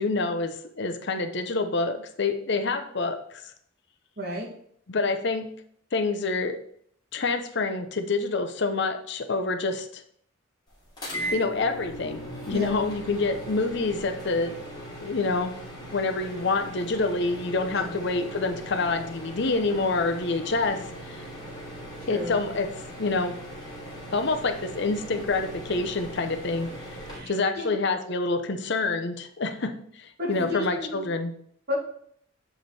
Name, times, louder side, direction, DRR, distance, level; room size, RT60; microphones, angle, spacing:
voice 1, 0.0-3.4 4.9-5.5 5.9-6.6 7.1-10.0 11.3-14.6 15.0-15.6 15.9-21.2 22.1-22.7 23.0-23.4 24.1-26.7 27.3-31.3, left 3 dB, 60° left, 8 dB, 0.7 m, -27 dB
voice 2, 4.2-4.5 11.2-11.3 12.5-12.7 17.7-18.0 22.1-22.4 27.1-27.8 30.2-31.1 31.7-31.8, left 1 dB, 55° right, -2 dB, 2.5 m, -33 dB
sound 1, 11.0-27.2, right 1 dB, 20° left, 2.8 m, -39 dB
7.8 x 4.9 x 4.2 m, 0.64 s
head